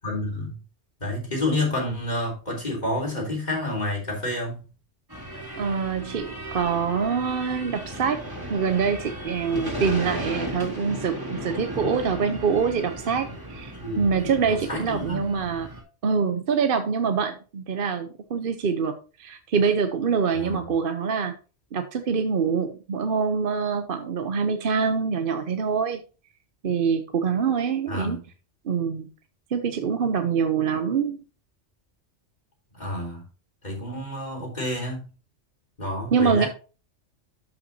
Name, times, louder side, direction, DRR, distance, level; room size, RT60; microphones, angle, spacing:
voice 1, 0.0-0.6 1.0-4.6 9.8-10.2 13.8-15.2 20.3-20.6 27.9-28.2 32.8-33.2 33.6-35.1 35.8-36.5, left 1 dB, 35° left, -1 dB, 3.5 m, -29 dB
sound 1, 5.1-15.8, right 1 dB, 20° right, 2.6 m, -36 dB
voice 2, 5.5-8.2 8.5-15.7 16.0-21.3 21.7-26.0 26.6-28.2 28.6-29.1 29.5-31.2 36.1-36.5, right 6 dB, 55° right, 8 dB, 0.8 m, -25 dB
12.5 x 5.7 x 2.7 m, 0.34 s
omnidirectional pair, 1.2 m